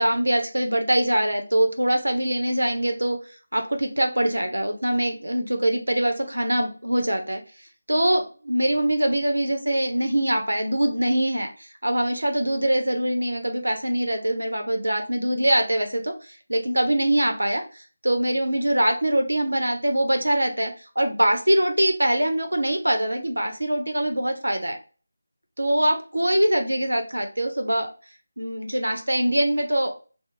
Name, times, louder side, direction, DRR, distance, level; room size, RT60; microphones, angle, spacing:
voice 1, 0.0-24.8 25.6-27.9 28.4-29.9, right 1 dB, 85° right, 5 dB, 0.6 m, -23 dB
2.3 x 2.0 x 3.8 m, 0.36 s
figure-of-eight pair, 165°, 0 cm